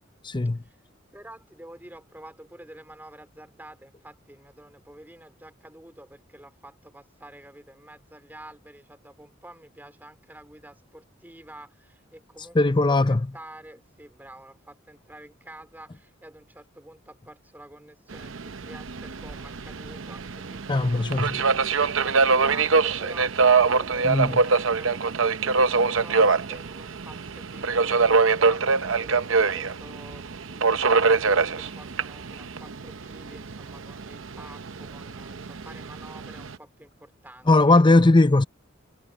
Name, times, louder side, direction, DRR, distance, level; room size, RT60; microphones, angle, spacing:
voice 1, 0.2-0.6 12.5-13.2 20.7-21.4 24.0-24.4 37.5-38.4, left 2 dB, 25° left, 0.6 m, -19 dB
voice 2, 1.1-37.8, right 1 dB, 10° right, 3.6 m, -48 dB
Subway metro underground, 18.1-36.5, right 4 dB, 75° right, 0.8 m, -24 dB
head